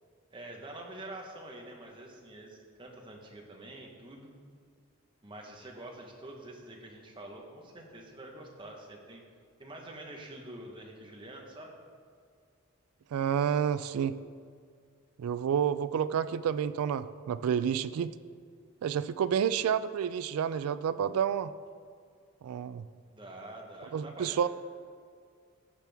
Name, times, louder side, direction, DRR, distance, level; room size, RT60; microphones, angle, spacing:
voice 1, 0.3-4.3 5.2-9.2 9.6-11.8 23.1-24.5, right 1 dB, 20° right, 0 dB, 1.1 m, -46 dB
voice 2, 13.1-14.1 15.2-18.1 18.8-21.5 22.4-22.8 23.9-24.5, right 8 dB, 80° right, 13 dB, 0.3 m, -29 dB
14.5 x 6.0 x 3.5 m, 2.1 s
head